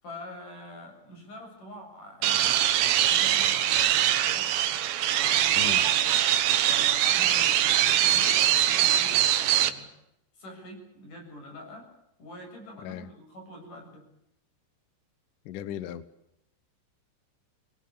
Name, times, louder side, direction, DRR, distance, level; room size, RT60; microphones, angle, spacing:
voice 1, 0.0-2.6 3.0-4.5 5.2-6.2 6.6-9.9 10.3-11.9 12.2-14.1, left 1 dB, 45° left, 3 dB, 9.0 m, -45 dB
sound 1, 2.2-9.7, right 11 dB, 70° right, 3.2 m, -23 dB
voice 2, 15.5-16.0, left 10 dB, 75° left, 14 dB, 1.9 m, -36 dB
26.0 x 21.0 x 8.6 m, 0.82 s
omnidirectional pair, 5.3 m